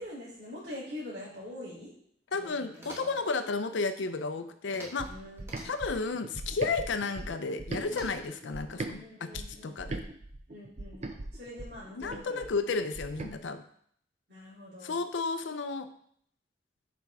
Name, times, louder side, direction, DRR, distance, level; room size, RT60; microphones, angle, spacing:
voice 1, 0.0-1.9 2.5-3.2 5.0-5.4 7.9-8.1 8.9-10.1 10.5-11.1 11.3-12.5 14.3-15.0, left 1 dB, 60° right, -10 dB, 3.2 m, -44 dB
voice 2, 2.3-5.1 5.6-10.0 12.0-13.6 14.8-15.9, left 4 dB, 80° left, 9 dB, 0.5 m, -33 dB
sound 1, 2.7-3.3 4.7-5.1 5.4-6.0 7.8-8.5, right 1 dB, 15° right, 1.3 m, -48 dB
sound 2, 5.0-9.0 9.3-13.3, right 2 dB, 35° right, 0.5 m, -40 dB
7.4 x 5.0 x 3.5 m, 0.64 s
head